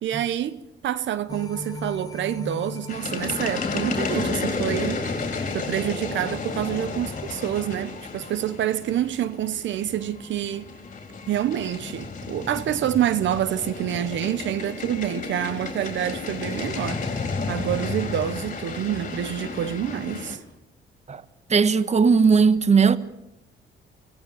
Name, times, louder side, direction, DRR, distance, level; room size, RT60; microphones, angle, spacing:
voice 1, 0.0-10.7 11.3-20.4, right 11 dB, 70° right, 1.0 m, -27 dB
sound 1, 1.3-9.7 10.1-10.2, left 2 dB, 20° left, 1.9 m, -41 dB
sound 2, 2.9-20.4, left 4 dB, 40° left, 4.4 m, -32 dB
voice 2, 21.5-23.0, right 5 dB, 35° right, 1.3 m, -17 dB
24.0 x 17.5 x 8.7 m
cardioid pair, 90°, 20 cm